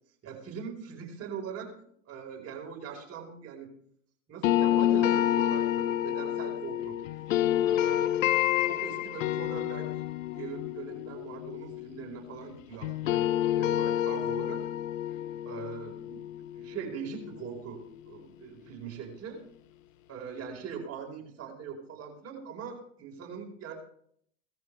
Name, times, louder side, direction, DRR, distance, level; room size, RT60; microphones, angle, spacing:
voice 1, 0.2-1.7 2.0-3.7 4.3-7.0 7.6-8.3 8.6-9.9 10.3-14.6 15.4-16.2 16.5-19.4 20.1-23.7, right 6 dB, 40° right, 0 dB, 4.7 m, -41 dB
sound 1, 4.4-12.5 12.8-17.8, left 12 dB, 75° left, 0.8 m, -29 dB
18.0 x 13.5 x 3.4 m, 0.66 s
hypercardioid pair, 90°, 39 cm